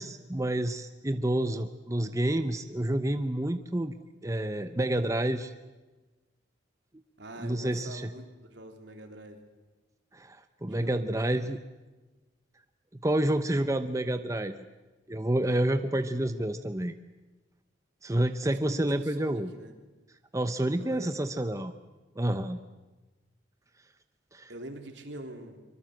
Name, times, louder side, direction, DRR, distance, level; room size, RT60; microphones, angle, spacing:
voice 1, 0.0-3.9 4.2-5.5 7.4-8.0 10.1-11.6 13.0-14.6 15.1-16.9 18.0-19.5 20.3-21.7 22.2-22.6 24.3-24.5, right 1 dB, 15° right, 9 dB, 0.8 m, -29 dB
voice 2, 7.2-8.2 8.5-9.4 10.7-11.5 18.4-19.7 20.7-21.1 24.5-25.6, right 1 dB, 75° right, 5 dB, 3.3 m, -44 dB
24.5 x 24.0 x 7.8 m, 1.2 s
head